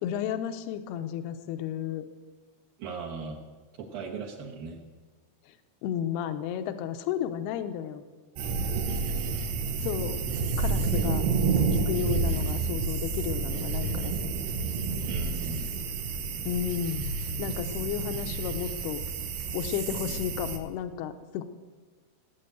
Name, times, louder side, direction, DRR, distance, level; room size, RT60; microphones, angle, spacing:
voice 1, 0.0-2.1 5.8-8.1 9.8-10.2 10.6-11.3 11.7-14.3 16.4-19.0 19.5-21.4, left 10 dB, 80° left, 9 dB, 2.8 m, -33 dB
voice 2, 2.8-3.4 3.8-4.8 8.9-9.4 15.1-15.7 19.9-20.1, right 5 dB, 65° right, -3 dB, 3.0 m, -39 dB
sound 1, 8.4-20.6, right 4 dB, 90° right, 3.5 m, -29 dB
19.0 x 9.5 x 8.0 m, 1.4 s
omnidirectional pair, 4.7 m